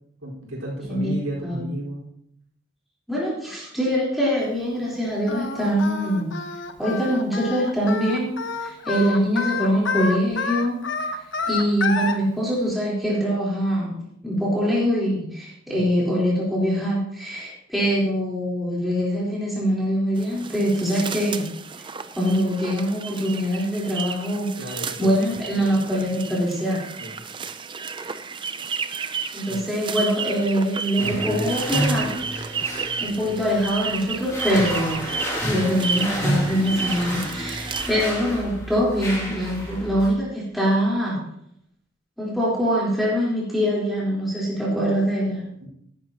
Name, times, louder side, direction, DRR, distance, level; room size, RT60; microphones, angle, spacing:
voice 1, 0.2-2.1 16.0-16.1 24.6-25.4 27.0-27.2 29.5-29.7 45.6-45.7, right 1 dB, 85° right, -5 dB, 4.5 m, -33 dB
voice 2, 0.9-1.6 3.1-6.4 6.8-8.3 8.6-10.8 11.5-21.5 22.1-24.5 25.0-26.8 29.3-32.6 33.0-35.0 35.4-41.2 42.2-45.4, equal, ahead, -7 dB, 4.0 m, -23 dB
Singing, 5.3-12.2, left 4 dB, 70° left, 1.0 m, -28 dB
sound 1, 20.2-38.0, right 6 dB, 25° right, 0.5 m, -32 dB
sound 2, 31.0-40.1, equal, 15° left, 2.5 m, -30 dB
14.5 x 11.0 x 2.9 m, 0.72 s
head